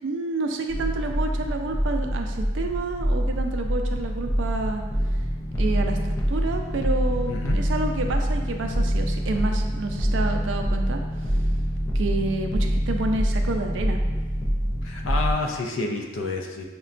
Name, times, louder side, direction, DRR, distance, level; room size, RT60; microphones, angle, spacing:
voice 1, 0.0-4.8 5.6-11.0 11.9-14.0, right 2 dB, 70° right, 4 dB, 0.4 m, -29 dB
sound 1, 0.7-15.3, equal, 15° left, 0.3 m, -25 dB
voice 2, 7.3-7.6 14.8-16.6, left 3 dB, 80° left, 2 dB, 0.4 m, -29 dB
6.5 x 2.2 x 2.4 m, 1.3 s
head